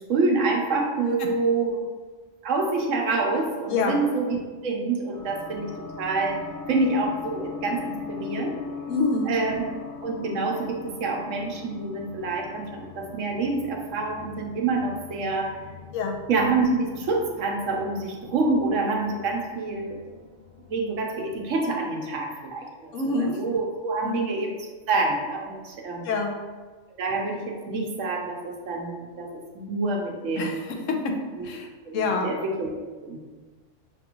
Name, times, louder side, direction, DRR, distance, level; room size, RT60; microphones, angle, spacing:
voice 1, 0.0-1.8 2.4-4.4 4.6-5.7 6.0-6.4 6.7-8.6 9.3-9.6 10.0-15.5 16.3-20.0 20.7-24.5 24.9-26.1 27.0-29.3 29.5-30.6 31.4-31.5 31.8-32.7 33.0-33.2, right 3 dB, 85° right, 1 dB, 1.1 m, -27 dB
voice 2, 3.7-4.0 8.9-9.3 15.9-16.2 22.9-23.4 24.0-24.2 26.0-26.3 30.4-31.0 31.4-31.7 31.9-32.3, left 3 dB, 85° left, 2 dB, 1.0 m, -26 dB
sound 1, 5.1-21.6, left 5 dB, 30° left, 0.7 m, -41 dB
6.1 x 2.5 x 2.9 m, 1.4 s
omnidirectional pair, 1.3 m